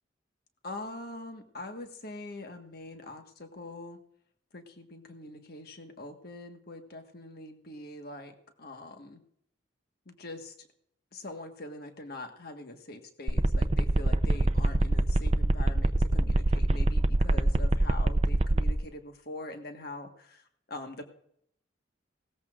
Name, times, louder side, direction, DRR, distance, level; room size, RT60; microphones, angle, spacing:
voice 1, 0.6-4.0 4.5-9.2 10.0-10.7 11.1-21.1, left 2 dB, 50° left, 5 dB, 1.5 m, -43 dB
sound 1, 13.3-18.7, right 1 dB, 30° right, 0.6 m, -23 dB
18.0 x 14.0 x 2.5 m, 0.68 s
head